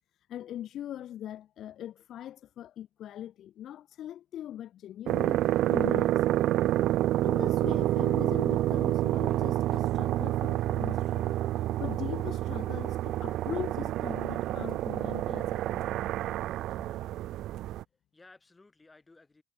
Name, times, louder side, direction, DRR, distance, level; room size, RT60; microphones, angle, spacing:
voice 1, 0.3-5.4 5.7-6.4 7.2-11.4 11.8-16.0, left 11 dB, 45° left, 1.3 m, -41 dB
sound 1, 5.1-17.8, right 14 dB, 50° right, 0.6 m, -28 dB
voice 2, 17.5-19.4, left 3 dB, 10° left, 7.5 m, -58 dB
cardioid pair, 160°, 0 cm